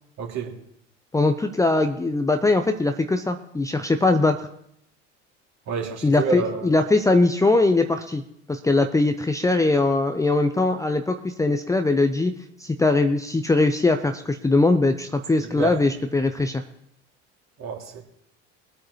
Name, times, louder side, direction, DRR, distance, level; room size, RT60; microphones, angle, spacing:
voice 1, 0.2-0.5 5.7-6.7 15.4-15.8 17.6-18.0, right 5 dB, 45° right, 0 dB, 3.0 m, -29 dB
voice 2, 1.1-4.5 6.0-8.2 8.5-16.6, left 2 dB, 10° left, 7 dB, 0.7 m, -21 dB
22.5 x 8.6 x 3.2 m, 0.72 s
figure-of-eight pair, 70°, 36 cm